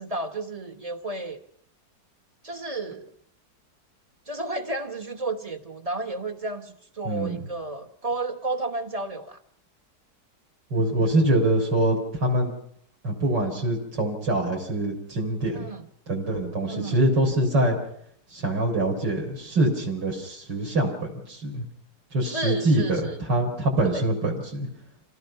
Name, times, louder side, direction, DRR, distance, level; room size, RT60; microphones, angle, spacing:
voice 1, 0.0-1.4 2.4-3.1 4.3-9.4 15.5-15.9 16.6-17.0 22.2-23.2 23.8-24.0, right 2 dB, 25° right, 4 dB, 1.0 m, -32 dB
voice 2, 7.0-7.4 10.7-12.5 13.0-15.7 16.1-17.8 18.3-21.6 22.1-24.7, right 1 dB, 75° right, 0 dB, 4.6 m, -24 dB
27.0 x 17.0 x 5.7 m, 0.67 s
omnidirectional pair, 1.9 m